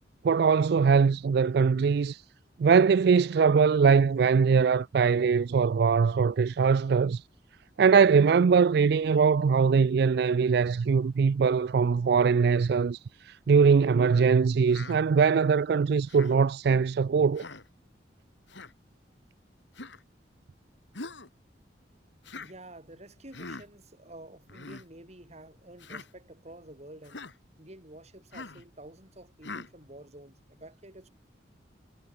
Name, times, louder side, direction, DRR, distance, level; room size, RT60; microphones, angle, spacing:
voice 1, 0.2-2.2 2.6-7.2 7.8-17.4, right 5 dB, 60° right, 0.4 m, -22 dB
Human voice, 14.7-15.0 16.1-16.4 17.4-17.7 18.5-18.7 19.7-20.0 20.9-21.3 22.2-22.5 23.3-23.7 24.5-24.8 25.8-26.1 27.0-27.3 28.3-28.6 29.4-29.7, left 3 dB, 80° left, 3.2 m, -42 dB
voice 2, 22.3-27.3 27.6-31.1, right 1 dB, 40° right, 5.0 m, -49 dB
head